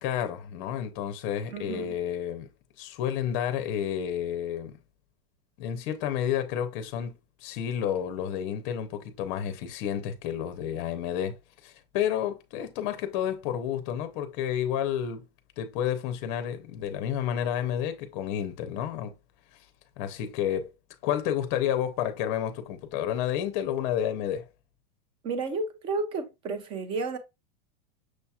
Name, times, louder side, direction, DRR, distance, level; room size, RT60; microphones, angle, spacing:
voice 1, 0.0-2.5 2.8-4.8 5.6-15.3 15.6-19.1 20.0-20.7 21.0-24.5, left 9 dB, 35° left, 0.6 m, -30 dB
voice 2, 1.5-1.9 25.2-27.2, right 3 dB, 20° right, 0.4 m, -32 dB
6.3 x 2.8 x 2.3 m
supercardioid pair, 165°, 29 cm